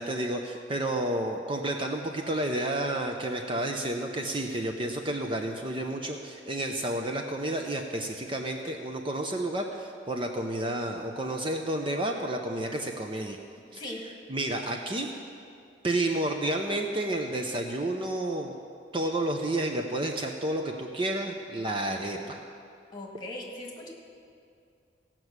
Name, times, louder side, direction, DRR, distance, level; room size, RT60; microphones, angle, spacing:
voice 1, 0.0-13.4 13.7-15.1 15.8-18.5 18.9-22.4, right 1 dB, 30° right, 3 dB, 0.6 m, -31 dB
voice 2, 22.9-23.9, left 1 dB, 25° left, -1 dB, 2.0 m, -39 dB
16.5 x 6.0 x 8.0 m, 2.4 s
head